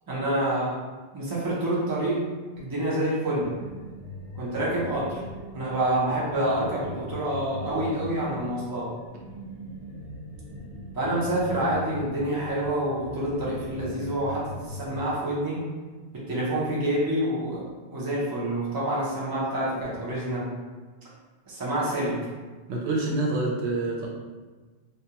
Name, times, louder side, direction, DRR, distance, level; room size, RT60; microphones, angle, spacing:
voice 1, 0.1-0.7 1.1-2.2 2.6-3.5 4.3-5.2 5.5-8.9 10.9-15.6 16.1-20.5 21.5-22.2, right 1 dB, 25° right, -7 dB, 0.6 m, -27 dB
sound 1, 3.4-15.0, left 1 dB, 65° left, 0.9 m, -40 dB
voice 2, 22.7-24.1, right 2 dB, 75° right, -3 dB, 0.9 m, -27 dB
2.4 x 2.2 x 2.8 m, 1.3 s
omnidirectional pair, 1.1 m